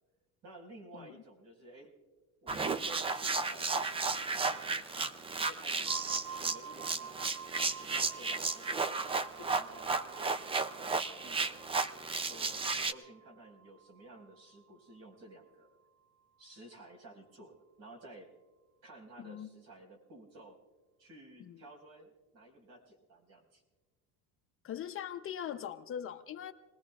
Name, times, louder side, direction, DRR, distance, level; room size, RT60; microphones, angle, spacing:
voice 1, 0.4-1.9 2.4-5.1 5.4-6.0 6.3-7.2 7.8-9.0 9.3-11.6 12.1-15.7 16.4-18.3 18.8-20.6 21.0-23.6, right 1 dB, 65° right, 0 dB, 5.1 m, -54 dB
sound 1, 2.5-12.9, right 4 dB, 15° right, 0.4 m, -34 dB
sound 2, 5.9-15.5, right 7 dB, 85° right, 0.8 m, -50 dB
voice 2, 19.2-19.5 21.4-21.6 24.6-26.5, left 9 dB, 35° left, 7 dB, 0.7 m, -41 dB
28.5 x 20.0 x 2.4 m, 1.2 s
cardioid pair, 140°, 39 cm